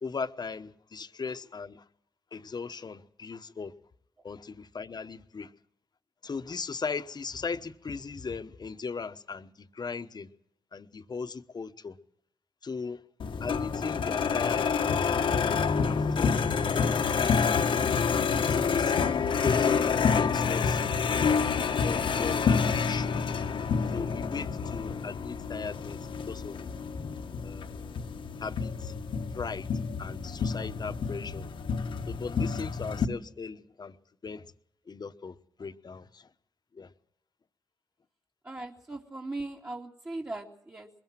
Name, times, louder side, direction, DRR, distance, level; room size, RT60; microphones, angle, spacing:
voice 1, 0.0-1.8 2.3-3.7 4.2-5.5 6.2-10.3 10.7-12.0 12.6-13.0 13.4-17.5 18.5-20.8 21.1-21.3 21.8-23.2 23.9-26.6 26.9-28.1 28.4-29.0 29.3-29.7 30.0-31.5 32.1-34.0 34.2-34.5 34.9-36.3 36.7-36.9, left 5 dB, 55° left, 1.2 m, -38 dB
sound 1, 13.2-33.1, left 6 dB, 80° left, 1.3 m, -28 dB
voice 2, 38.4-40.9, right 2 dB, 30° right, 2.5 m, -39 dB
21.5 x 17.0 x 7.6 m
cardioid pair, 50°, 9 cm